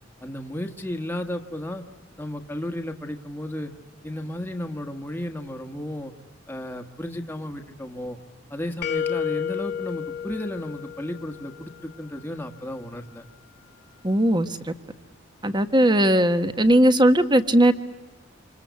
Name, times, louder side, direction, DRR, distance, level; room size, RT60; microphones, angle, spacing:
voice 1, 0.2-1.8 2.2-3.7 4.0-6.1 6.5-8.2 8.5-13.2, left 1 dB, 10° left, 4 dB, 1.5 m, -33 dB
sound 1, 8.8-11.7, left 8 dB, 55° left, 1.6 m, -31 dB
voice 2, 14.0-14.7 15.4-17.7, right 1 dB, 25° right, 10 dB, 1.4 m, -18 dB
27.0 x 26.5 x 8.2 m, 1.1 s
head